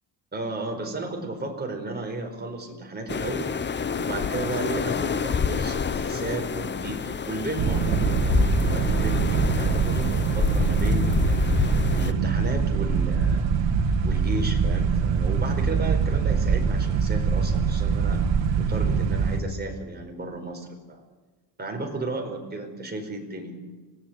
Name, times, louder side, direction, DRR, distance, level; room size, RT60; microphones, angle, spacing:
voice 1, 0.3-3.5 4.0-11.4 11.9-13.5 14.0-18.3 18.6-21.0 21.6-23.6, right 2 dB, 20° right, 2 dB, 4.8 m, -33 dB
sound 1, 3.1-12.1, left 6 dB, 25° left, 0.7 m, -28 dB
sound 2, 7.6-19.4, right 5 dB, 80° right, 1.9 m, -23 dB
25.0 x 19.0 x 8.2 m, 1.3 s
cardioid pair, 150°, 44 cm